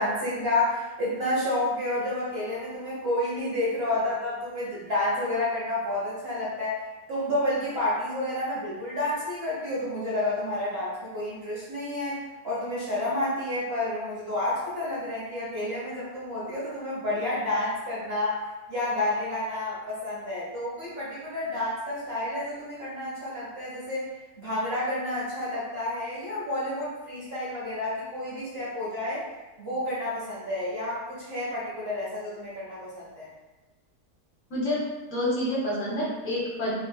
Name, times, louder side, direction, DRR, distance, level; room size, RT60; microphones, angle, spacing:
voice 1, 0.0-6.8 7.1-18.4 18.7-24.0 24.4-29.2 29.6-33.3, left 1 dB, 45° right, -8 dB, 1.0 m, -30 dB
voice 2, 34.5-34.8 35.1-36.7, left 1 dB, 60° left, -6 dB, 1.0 m, -28 dB
3.7 x 3.0 x 2.2 m, 1.1 s
omnidirectional pair, 1.7 m